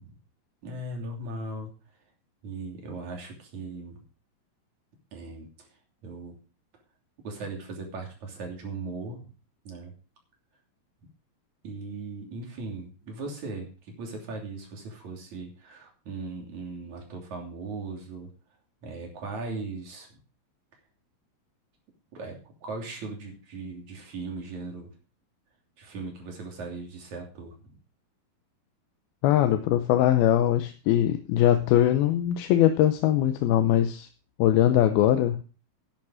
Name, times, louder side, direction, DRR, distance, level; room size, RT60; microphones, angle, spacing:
voice 1, 0.6-1.7 2.4-4.0 5.1-5.7 6.0-6.4 7.2-9.3 9.6-9.9 11.6-13.7 14.0-18.3 18.8-20.1 22.1-24.9 25.8-27.8, right 3 dB, 50° right, 4.3 m, -38 dB
voice 2, 29.2-34.1 34.4-35.4, left 12 dB, 75° left, 2.6 m, -21 dB
11.0 x 11.0 x 4.9 m
omnidirectional pair, 4.5 m